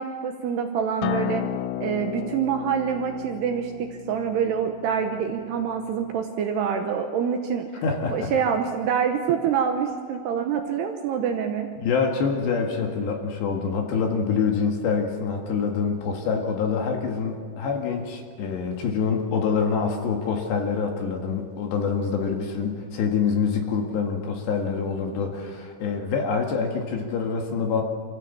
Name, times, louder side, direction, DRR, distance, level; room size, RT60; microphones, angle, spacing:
voice 1, 0.0-1.4 1.8-7.7 8.1-11.7, right 7 dB, 75° right, 4 dB, 2.7 m, -26 dB
Acoustic guitar, 1.0-6.2, left 14 dB, 90° left, 3.3 m, -33 dB
voice 2, 7.8-8.3 11.8-27.8, left 5 dB, 65° left, 2 dB, 3.8 m, -26 dB
26.5 x 15.0 x 7.2 m, 2.2 s
omnidirectional pair, 5.7 m